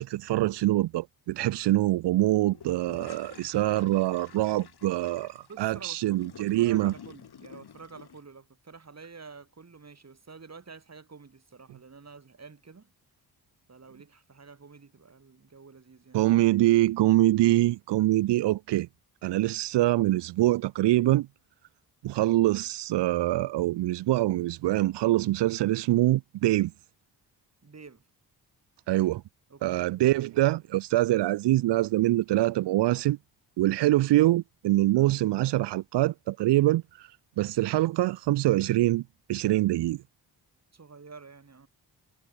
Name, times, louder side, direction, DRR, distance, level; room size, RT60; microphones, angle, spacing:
voice 1, 0.0-6.9 16.1-18.9 19.2-21.3 22.0-26.7 28.9-29.2 29.6-33.2 33.6-39.0 39.3-40.0, right 16 dB, 90° right, 0.6 m, -24 dB
sound 1, 2.5-8.2, left 8 dB, 70° left, 5.7 m, -50 dB
voice 2, 5.5-12.9 13.7-16.2 27.6-28.0 29.5-30.1 40.7-41.7, right 4 dB, 40° right, 5.9 m, -49 dB
cardioid pair, 85°, 40 cm